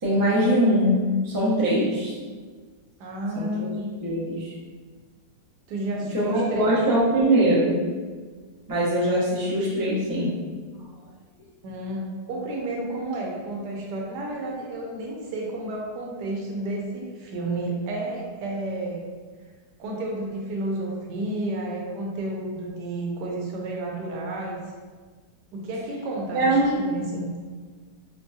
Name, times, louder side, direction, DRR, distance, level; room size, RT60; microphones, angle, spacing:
voice 1, 0.0-2.1 3.3-3.5 4.0-4.5 6.0-7.8 8.7-10.3 26.3-26.8, right 1 dB, 25° right, -8 dB, 0.4 m, -22 dB
voice 2, 3.0-3.9 5.7-6.7 11.6-19.0 19.8-24.6 25.5-26.5 26.8-27.3, right 1 dB, 75° right, -1 dB, 1.2 m, -31 dB
4.3 x 2.2 x 2.7 m, 1.5 s
omnidirectional pair, 1.8 m